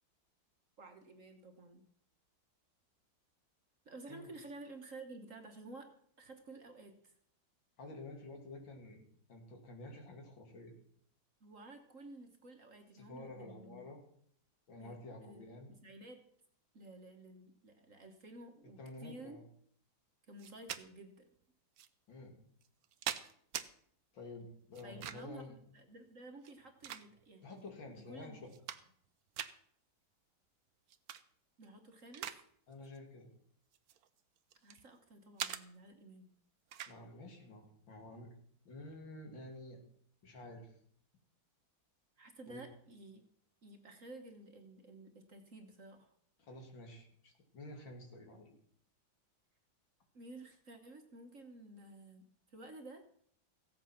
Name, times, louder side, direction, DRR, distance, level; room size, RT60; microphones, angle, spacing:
voice 1, 0.8-1.8 3.8-5.9 6.2-7.1 11.4-13.9 14.8-16.2 16.7-19.4 20.3-21.3 24.8-28.4 31.6-32.3 34.6-36.3 42.2-43.2 43.6-46.1 50.1-53.0, right 2 dB, 45° right, 5 dB, 1.4 m, -53 dB
voice 2, 7.8-9.0 9.3-10.7 12.9-14.0 14.7-15.7 18.8-19.4 22.1-22.3 24.1-25.5 27.4-28.5 32.7-33.3 36.9-38.3 38.6-39.8 40.2-40.7 42.5-42.6 46.4-48.5, left 2 dB, 70° left, 3 dB, 3.0 m, -50 dB
sound 1, 20.4-20.8 21.8-21.9 22.6-23.7 24.7-25.4 26.4-27.4 28.0-28.1 28.4-29.1 29.3-29.5 30.9-31.2 31.6-32.4 32.7-33.0 33.7-34.8 35.4-35.6 36.7-37.0, right 10 dB, 65° right, 1.0 m, -43 dB
16.0 x 8.1 x 5.8 m, 0.63 s
omnidirectional pair, 2.1 m